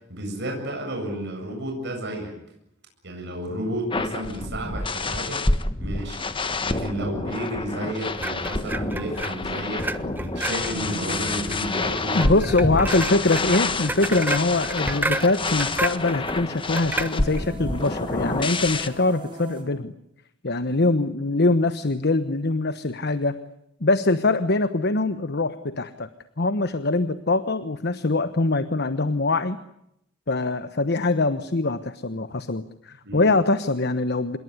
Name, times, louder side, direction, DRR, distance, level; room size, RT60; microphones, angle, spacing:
voice 1, 0.1-2.3 3.0-5.4 5.8-6.3 6.6-13.2 33.0-33.3, right 1 dB, 60° right, 1 dB, 7.9 m, -32 dB
sound 1, 3.9-18.9, left 3 dB, 25° left, 1.4 m, -28 dB
sound 2, 8.2-17.5, right 1 dB, 10° right, 1.3 m, -32 dB
sound 3, 10.6-19.6, equal, 25° right, 5.5 m, -39 dB
voice 2, 12.1-19.9 20.4-23.4 23.8-26.1 26.4-29.6 30.3-34.4, left 2 dB, 55° left, 11 dB, 1.2 m, -23 dB
27.0 x 22.0 x 9.8 m, 0.80 s
head